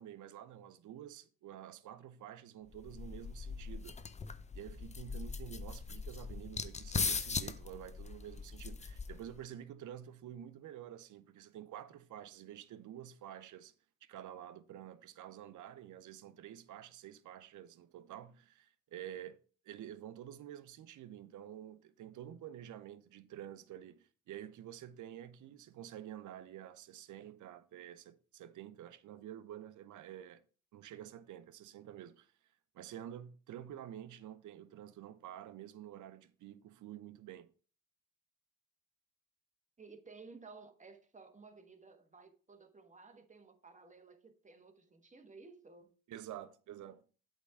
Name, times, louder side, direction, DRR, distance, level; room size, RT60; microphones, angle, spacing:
voice 1, 0.0-4.0 4.5-13.7 14.0-19.4 19.6-30.4 30.7-32.3 32.7-37.5 46.1-47.0, right 11 dB, 60° right, 0.8 m, -49 dB
sound 1, 2.7-9.4, left 5 dB, 20° left, 0.6 m, -40 dB
voice 2, 39.8-45.9, right 4 dB, 20° right, 1.4 m, -56 dB
8.2 x 3.8 x 5.7 m
supercardioid pair, 70°, 35 cm